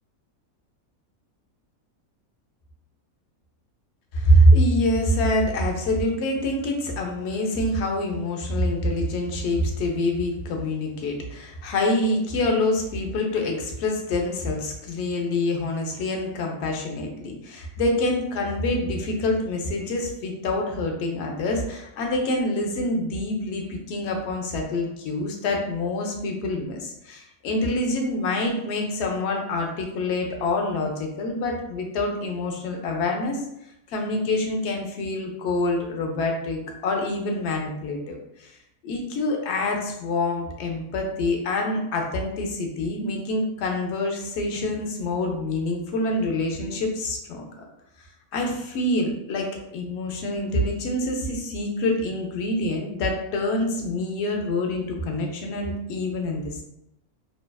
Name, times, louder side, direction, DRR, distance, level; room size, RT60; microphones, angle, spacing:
voice 1, 4.1-33.4 33.9-38.5 38.8-47.6 48.3-56.6, left 1 dB, 65° left, 1 dB, 0.7 m, -26 dB
2.7 x 2.2 x 2.2 m, 0.81 s
omnidirectional pair, 1.5 m